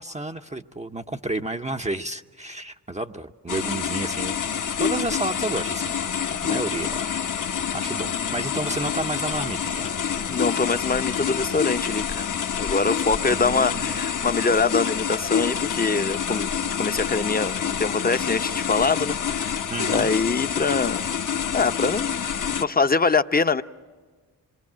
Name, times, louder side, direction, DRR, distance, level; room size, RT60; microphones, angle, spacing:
voice 1, 0.0-4.4 4.8-6.0 6.4-9.9 13.3-14.0 19.7-20.1, right 2 dB, 15° right, 0.8 m, -31 dB
sound 1, 3.5-22.6, left 7 dB, 45° left, 1.1 m, -27 dB
voice 2, 10.3-12.3 12.6-16.5 16.8-19.5 19.8-21.0 21.5-22.3 22.6-23.6, left 4 dB, 20° left, 0.9 m, -24 dB
26.5 x 22.0 x 7.5 m
supercardioid pair, 45°, 42 cm